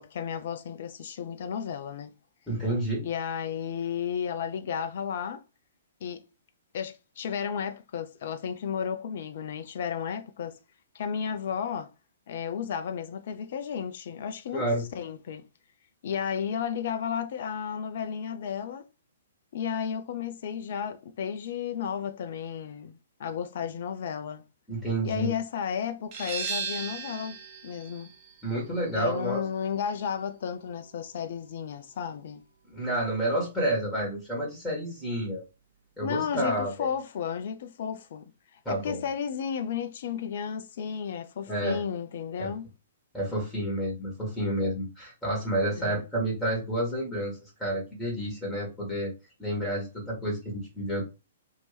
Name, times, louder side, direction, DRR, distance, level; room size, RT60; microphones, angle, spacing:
voice 1, 0.0-2.1 3.0-5.4 6.0-6.2 6.7-10.6 10.9-11.9 12.3-15.4 16.0-18.8 19.5-24.4 25.0-27.4 27.6-28.1 28.9-32.4 36.0-38.3 38.5-42.7 45.7-46.1, left 7 dB, 50° left, 0.3 m, -33 dB
voice 2, 2.5-3.0 14.5-14.8 24.7-25.3 28.4-29.4 32.7-35.4 36.0-36.9 38.6-39.0 41.5-41.8 42.4-42.5 43.1-49.1 49.4-51.1, right 1 dB, 5° left, 1.5 m, -30 dB
sound 1, 26.1-31.5, right 5 dB, 35° right, 0.8 m, -38 dB
2.9 x 2.7 x 3.3 m
figure-of-eight pair, 115°, 0 cm